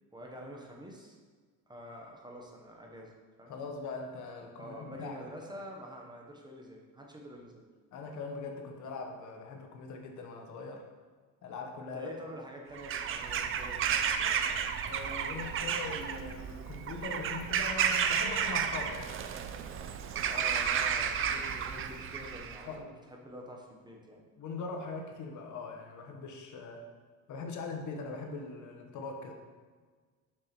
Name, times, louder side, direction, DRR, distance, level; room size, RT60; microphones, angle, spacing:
voice 1, 0.1-1.2 1.7-3.1 3.4-3.5 4.6-7.6 11.9-14.5 20.3-24.2, equal, 15° right, 0 dB, 0.8 m, -47 dB
voice 2, 3.5-5.3 7.9-10.8 11.4-12.1 14.9-19.2 21.3-21.5 22.7-22.9 24.4-26.8 27.3-29.3, left 3 dB, 55° left, 3 dB, 1.0 m, -41 dB
Bird vocalization bird call bird song / Crow, 12.7-22.6, right 7 dB, 40° right, 0.4 m, -32 dB
6.2 x 6.1 x 2.9 m, 1.5 s
cardioid pair, 125°, 34 cm